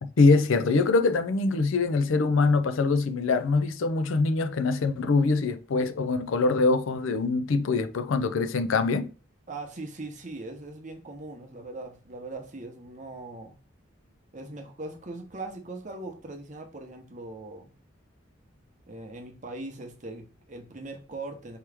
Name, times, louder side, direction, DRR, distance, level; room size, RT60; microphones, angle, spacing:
voice 1, 0.0-9.1, left 3 dB, 75° left, 0.5 m, -24 dB
voice 2, 9.5-13.6 14.3-17.7 18.9-21.6, right 2 dB, 35° right, 0.8 m, -40 dB
4.8 x 3.0 x 3.4 m
head